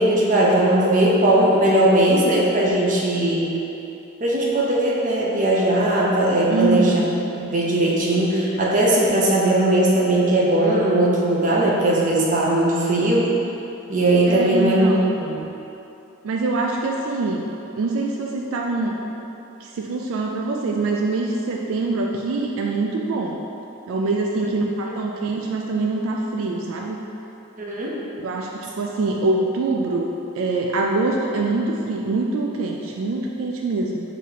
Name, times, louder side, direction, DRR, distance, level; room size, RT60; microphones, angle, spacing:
voice 1, 0.0-3.5 4.2-7.0 7.4-13.3 13.9-14.9 15.2-15.4 24.4-24.5 27.6-27.9, right 1 dB, 40° right, -4 dB, 0.6 m, -19 dB
voice 2, 6.5-7.0 14.3-15.2 16.2-17.5 17.8-19.0 19.6-23.4 23.9-27.0 28.2-34.0, right 3 dB, 75° right, 0 dB, 0.3 m, -24 dB
4.7 x 2.7 x 3.9 m, 2.9 s
head